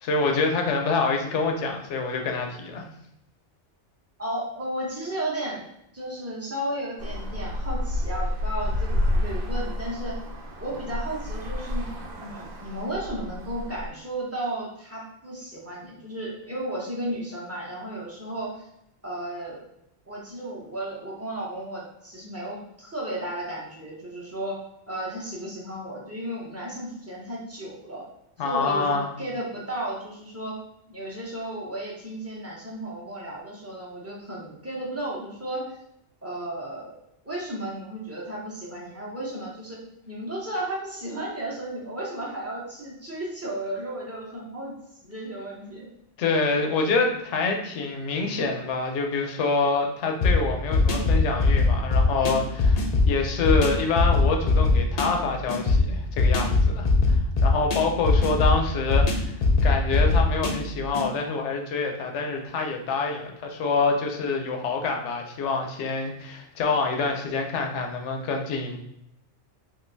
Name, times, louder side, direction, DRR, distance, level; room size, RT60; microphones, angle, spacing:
voice 1, 0.0-2.8 28.4-29.1 46.2-68.8, left 4 dB, 85° left, 3 dB, 0.9 m, -26 dB
voice 2, 4.2-5.6 5.9-10.2 10.6-18.6 19.0-19.6 20.1-24.6 24.9-28.1 28.4-30.6 30.9-35.6 36.2-39.8 40.1-44.7 45.0-45.9 46.5-46.8, right 1 dB, 15° right, -5 dB, 0.6 m, -34 dB
Traffic noise roadway noise, 7.0-13.9, left 1 dB, 65° right, 0.8 m, -29 dB
sound 1, 50.2-61.1, left 3 dB, 60° left, 0.4 m, -22 dB
3.6 x 2.5 x 2.6 m, 0.79 s
omnidirectional pair, 1.2 m